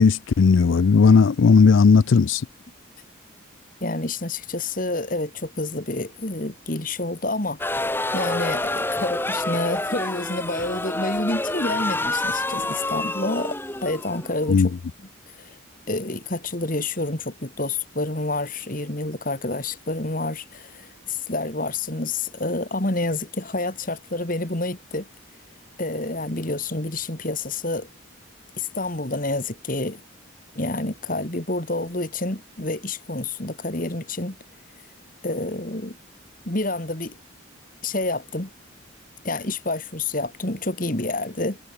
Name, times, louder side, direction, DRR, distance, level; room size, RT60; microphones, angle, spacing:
voice 1, 0.0-2.4 14.5-14.7, left 5 dB, 70° left, 0.4 m, -16 dB
voice 2, 3.8-7.6 8.1-14.7 15.0-15.6 15.9-25.1 25.8-27.9 28.6-30.0 30.6-34.4 35.2-36.0 36.5-37.1 37.8-38.5 39.2-41.6, left 2 dB, 40° left, 2.4 m, -28 dB
sound 1, 7.6-14.8, left 2 dB, 10° left, 2.3 m, -28 dB
head